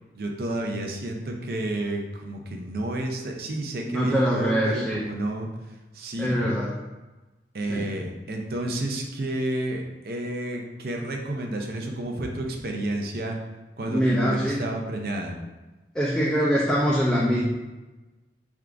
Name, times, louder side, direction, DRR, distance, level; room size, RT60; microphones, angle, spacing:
voice 1, 0.1-5.5 5.9-6.4 7.5-13.4 13.8-15.3, right 1 dB, 60° right, 2 dB, 0.6 m, -30 dB
voice 2, 3.9-5.1 6.2-6.8 7.7-7.9 13.9-14.6 15.9-17.4, equal, 5° left, -7 dB, 0.4 m, -23 dB
3.6 x 2.5 x 4.5 m, 1.1 s
head